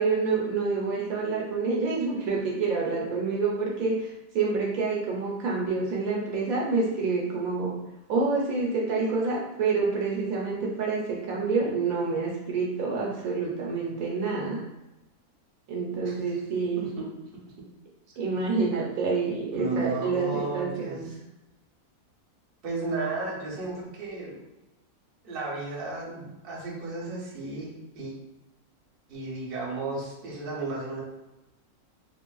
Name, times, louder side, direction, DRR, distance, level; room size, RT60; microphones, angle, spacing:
voice 1, 0.0-7.8 8.1-14.6 15.7-16.8 18.2-21.1, right 4 dB, 75° right, -2 dB, 1.0 m, -27 dB
voice 2, 16.0-16.4 16.8-17.0 19.5-21.1 22.6-24.4 25.2-27.7 27.9-28.1 29.1-31.0, right 3 dB, 50° right, -3 dB, 0.8 m, -33 dB
3.1 x 2.5 x 2.3 m, 0.98 s
omnidirectional pair, 1.6 m